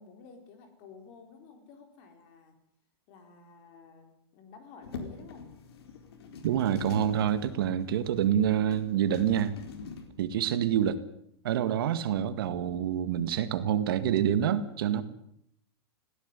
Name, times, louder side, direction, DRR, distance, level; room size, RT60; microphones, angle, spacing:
voice 1, 0.0-2.5 3.1-5.5, left 5 dB, 35° left, 7 dB, 4.5 m, -52 dB
sound 1, 4.8-10.1, left 5 dB, 70° left, 4.1 m, -44 dB
voice 2, 6.4-9.6 10.2-11.0 11.4-15.0, right 10 dB, 60° right, 12 dB, 1.9 m, -27 dB
19.5 x 17.5 x 9.9 m, 0.73 s
supercardioid pair, 165°, 14 cm